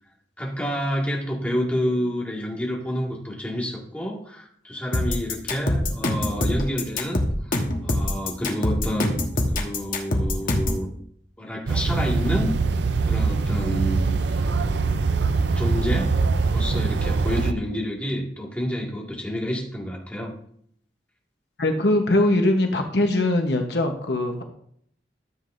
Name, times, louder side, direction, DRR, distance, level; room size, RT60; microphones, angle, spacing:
voice 1, 0.4-7.6 7.8-10.9 11.4-14.0 14.3-14.4 15.6-16.1 16.5-20.3, equal, 10° left, -3 dB, 2.0 m, -29 dB
sound 1, 4.9-10.8, left 1 dB, 50° left, 1.3 m, -24 dB
sound 2, 11.7-17.5, right 4 dB, 75° right, 0.5 m, -23 dB
voice 2, 21.6-24.4, left 1 dB, 65° left, 4 dB, 1.1 m, -21 dB
13.5 x 7.5 x 2.6 m, 0.65 s
head